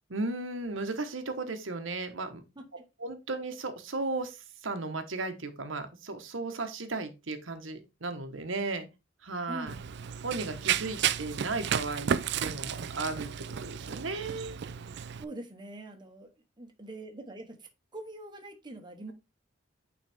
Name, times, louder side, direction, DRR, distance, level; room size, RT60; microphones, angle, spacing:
voice 1, 0.0-2.4 3.0-8.9 9.2-9.7 10.2-14.6, right 3 dB, 85° right, 1.2 m, -35 dB
voice 2, 9.5-9.8 15.2-16.3 16.6-19.1, right 1 dB, 25° right, 1.1 m, -44 dB
Run, 9.7-15.2, right 8 dB, 60° right, 0.4 m, -33 dB
8.9 x 3.9 x 3.5 m
head